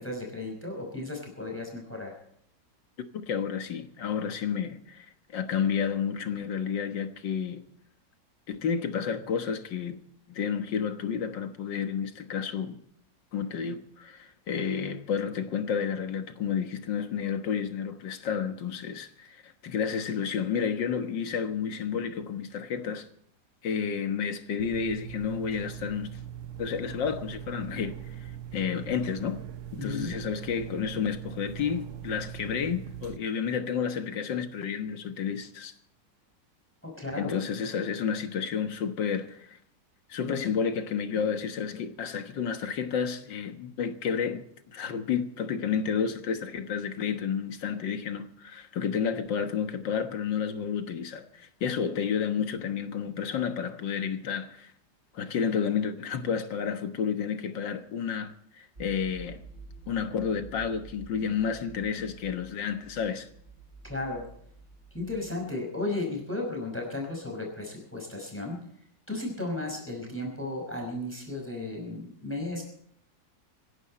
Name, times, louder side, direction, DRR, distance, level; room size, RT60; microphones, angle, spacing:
voice 1, 0.0-2.1 29.8-30.1 36.8-37.3 63.8-64.2 64.9-68.6 69.1-72.6, left 2 dB, 5° left, 5.3 m, -34 dB
voice 2, 3.3-5.1 5.3-7.7 8.5-10.0 10.3-12.8 13.3-23.1 23.6-26.2 26.6-29.5 29.8-35.7 37.2-39.6 40.1-54.7 55.1-59.4 59.9-63.3, left 7 dB, 75° left, 2.1 m, -31 dB
sound 1, 24.6-33.2, right 11 dB, 60° right, 0.8 m, -41 dB
sound 2, 58.7-65.3, right 5 dB, 25° right, 4.9 m, -49 dB
26.0 x 11.0 x 4.3 m
omnidirectional pair, 2.0 m